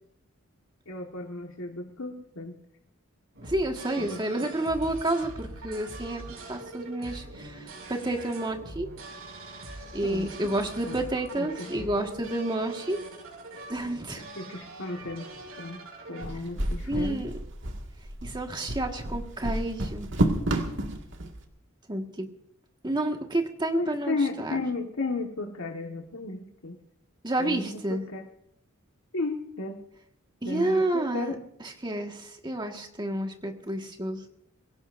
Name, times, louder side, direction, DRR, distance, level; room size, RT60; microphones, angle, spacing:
voice 1, 0.8-2.6 4.0-4.2 10.0-10.5 10.9-11.0 11.3-11.9 14.3-15.3 15.6-17.2 23.7-26.8 27.4-28.3 29.1-29.8 30.4-31.3, left 3 dB, 75° left, 2 dB, 1.7 m, -34 dB
sound 1, 3.3-16.2, right 2 dB, 80° right, 6.0 m, -43 dB
voice 2, 3.4-6.2 6.5-8.9 9.9-13.0 13.7-14.2 16.9-17.3 18.2-20.1 21.9-22.3 22.8-24.6 27.2-28.0 30.4-31.3 31.8-34.2, right 1 dB, 20° right, 3 dB, 1.7 m, -30 dB
sound 2, 16.2-21.3, right 1 dB, 60° right, 2.0 m, -30 dB
24.5 x 16.5 x 2.6 m, 0.73 s
head